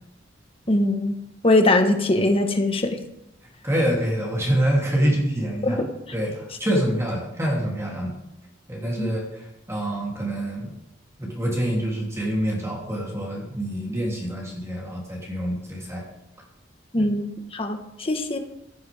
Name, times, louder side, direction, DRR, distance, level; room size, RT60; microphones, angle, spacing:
voice 1, 0.7-1.2 1.4-3.0 5.6-5.8 9.0-9.1 16.9-18.4, left 2 dB, 30° left, 5 dB, 1.4 m, -21 dB
voice 2, 3.6-8.1 8.7-10.7 11.2-16.0 17.0-17.1, right 1 dB, 15° right, -3 dB, 3.3 m, -26 dB
15.5 x 13.0 x 3.6 m, 0.83 s
head